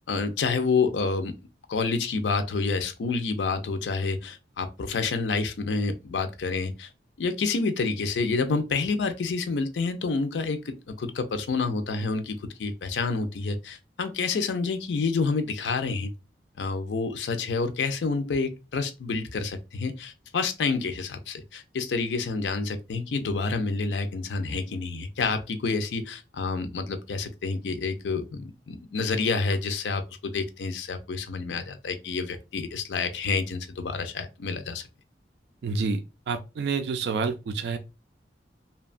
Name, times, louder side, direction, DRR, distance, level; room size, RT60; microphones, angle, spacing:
voice 1, 0.1-1.4 1.7-6.9 7.2-16.1 16.6-34.8, left 4 dB, 85° left, 0.4 m, -28 dB
voice 2, 35.6-36.0 36.3-37.8, right 4 dB, 75° right, 0.3 m, -28 dB
2.8 x 2.2 x 2.4 m
head